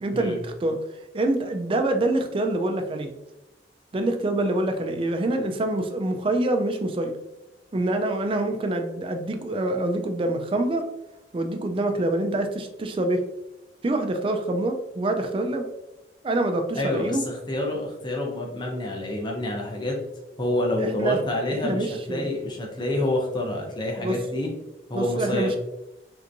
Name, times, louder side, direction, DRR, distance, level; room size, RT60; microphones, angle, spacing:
voice 1, 0.0-0.8 1.1-3.1 3.9-7.1 7.7-10.8 11.3-13.3 13.8-15.7 16.2-17.2 20.8-21.2 21.5-22.3 24.0-24.2 24.9-25.6, right 2 dB, 30° right, 5 dB, 0.3 m, -26 dB
voice 2, 16.7-20.0 20.4-24.5 24.9-25.6, left 1 dB, 25° left, 0 dB, 0.7 m, -27 dB
3.3 x 2.9 x 2.5 m, 0.96 s
head